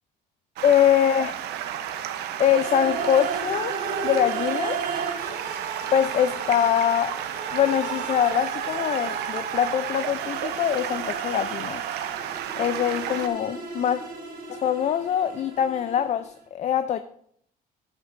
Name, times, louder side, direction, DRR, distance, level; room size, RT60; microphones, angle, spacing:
voice 1, 0.6-1.5 2.4-3.7 4.0-4.8 5.9-7.2 7.5-11.8 12.6-14.0 14.5-17.0, left 9 dB, 45° left, 11 dB, 0.4 m, -23 dB
Stream, 0.6-13.3, right 10 dB, 80° right, 0.7 m, -33 dB
sound 1, 2.4-16.3, right 5 dB, 60° right, 3.5 m, -34 dB
12.0 x 8.1 x 2.5 m, 0.67 s
cardioid pair, 110°, 17 cm